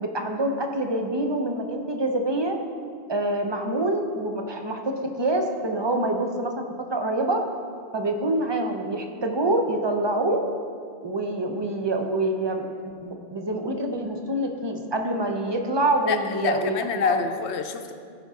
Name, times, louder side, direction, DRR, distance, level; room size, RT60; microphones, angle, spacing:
voice 1, 0.0-2.5 3.1-4.8 5.2-6.6 6.9-7.4 7.9-10.4 11.0-12.6 13.0-17.2, right 1 dB, 30° right, 3 dB, 0.7 m, -26 dB
voice 2, 16.1-17.9, left 5 dB, 90° left, 7 dB, 0.9 m, -26 dB
15.0 x 5.3 x 3.7 m, 2.3 s
omnidirectional pair, 1.1 m